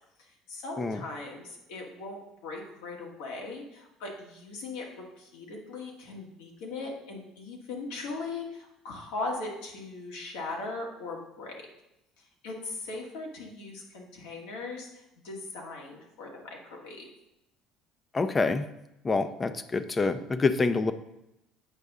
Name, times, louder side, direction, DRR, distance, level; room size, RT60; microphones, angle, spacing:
voice 1, 0.5-11.6 12.4-17.1, left 3 dB, 80° left, -1 dB, 1.7 m, -39 dB
voice 2, 18.1-18.7 19.0-20.9, left 3 dB, 25° left, 11 dB, 0.6 m, -26 dB
8.2 x 5.4 x 3.6 m, 0.87 s
supercardioid pair, 80°, 0 cm